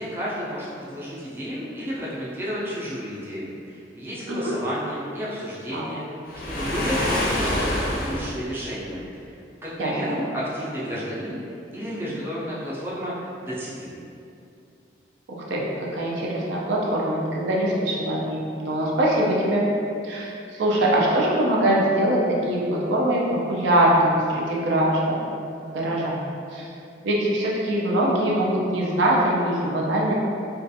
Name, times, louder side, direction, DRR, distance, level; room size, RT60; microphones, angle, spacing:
voice 1, 0.0-6.0 6.4-9.4 9.6-11.4 11.7-14.0, equal, 10° right, -8 dB, 0.4 m, -32 dB
Waves surf, 6.3-8.4, left 1 dB, 50° left, 0.4 m, -25 dB
voice 2, 9.8-10.2 15.3-15.6 15.9-19.7 20.0-25.3 25.7-26.2 26.5-26.7 27.0-30.1, right 1 dB, 80° right, -4 dB, 0.5 m, -23 dB
2.4 x 2.3 x 2.6 m, 2.5 s
head